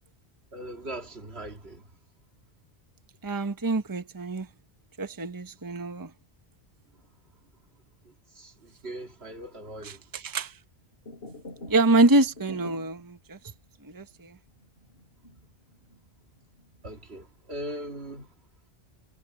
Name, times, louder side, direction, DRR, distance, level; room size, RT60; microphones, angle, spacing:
voice 1, 0.5-1.9 8.4-10.0 16.8-18.3, right 1 dB, 70° right, 2.6 m, -39 dB
voice 2, 3.2-4.5 5.0-6.1 9.8-10.5 11.7-13.4 13.8-14.4, right 2 dB, 20° right, 1.0 m, -25 dB
sound 1, 10.9-12.0 12.2-13.1 13.5-13.6 13.9-14.1 14.6-16.0 16.3-17.0, left 1 dB, 65° left, 4.9 m, -46 dB
omnidirectional pair, 1.1 m